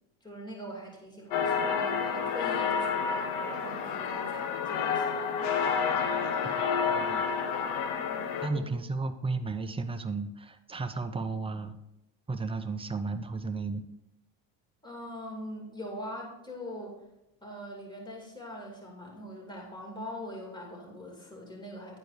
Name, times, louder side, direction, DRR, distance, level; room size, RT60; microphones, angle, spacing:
voice 1, 0.2-5.2 8.5-8.7 14.8-17.0 17.4-22.0, equal, 10° left, -1 dB, 2.6 m, -42 dB
sound 1, 1.3-8.5, left 6 dB, 75° left, 1.2 m, -29 dB
voice 2, 6.4-7.4 8.4-11.8 12.3-13.8, right 3 dB, 10° right, 7 dB, 0.7 m, -34 dB
10.5 x 4.6 x 4.8 m, 0.88 s
supercardioid pair, 95°, 47 cm